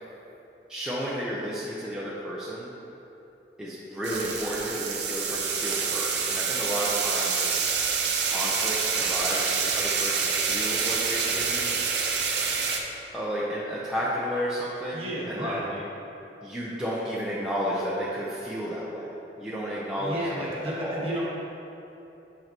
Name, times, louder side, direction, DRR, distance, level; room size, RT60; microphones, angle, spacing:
voice 1, 0.7-2.7 3.6-7.5 8.2-10.2 10.5-11.6 13.1-15.6 16.4-19.1 19.4-21.0, equal, 5° right, -9 dB, 0.6 m, -32 dB
sound 1, 4.0-12.8, right 5 dB, 80° right, 0.6 m, -27 dB
voice 2, 14.9-15.8 20.0-21.2, right 1 dB, 35° right, -6 dB, 1.4 m, -32 dB
7.3 x 5.5 x 2.9 m, 3.0 s
head